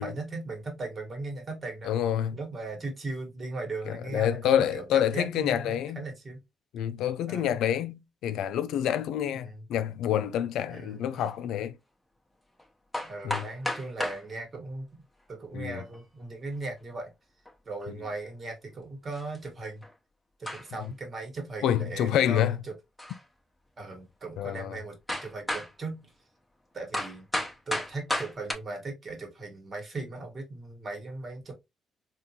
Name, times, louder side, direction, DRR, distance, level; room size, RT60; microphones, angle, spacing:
voice 1, 0.0-1.9 2.3-6.4 7.3-7.6 9.3-9.6 10.7-11.1 13.0-15.0 15.3-17.1 17.6-19.8 20.4-22.7 23.8-26.1 26.7-27.2 27.7-31.5, right 3 dB, 40° right, 1.4 m, -38 dB
voice 2, 1.8-2.4 3.9-6.1 6.7-11.7 13.2-13.4 15.5-15.8 21.6-22.6 24.4-24.8, left 10 dB, 85° left, 0.3 m, -27 dB
sound 1, 11.1-11.3 12.6-12.7 12.9-14.2 15.5-16.0 17.5-17.6 17.8-17.9 19.1-19.4 19.8-19.9 20.4-20.9 23.0-23.3 23.9-24.0 25.1-25.7 26.9-28.5, left 1 dB, 10° left, 0.8 m, -33 dB
3.6 x 2.5 x 2.7 m
cardioid pair, 90°, 0 cm